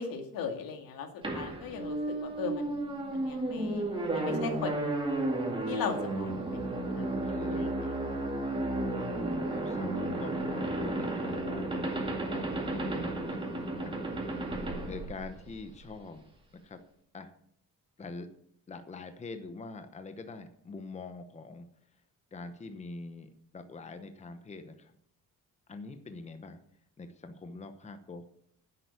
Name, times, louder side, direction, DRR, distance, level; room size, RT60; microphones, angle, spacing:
voice 1, 0.0-4.9 5.7-6.4 6.9-7.1 7.5-7.7 8.1-8.3, left 6 dB, 80° left, 5 dB, 2.4 m, -38 dB
sound 1, 1.2-15.8, right 2 dB, 15° right, 2.3 m, -33 dB
voice 2, 7.0-7.8 9.5-11.7 12.0-13.5 13.8-14.0 14.9-16.2 16.5-16.8 17.1-17.3 18.0-18.3 18.7-21.7 22.3-24.9 25.7-26.6 27.0-28.2, left 3 dB, 20° left, 8 dB, 0.9 m, -44 dB
11.0 x 8.1 x 6.9 m, 0.70 s
cardioid pair, 155°, 34 cm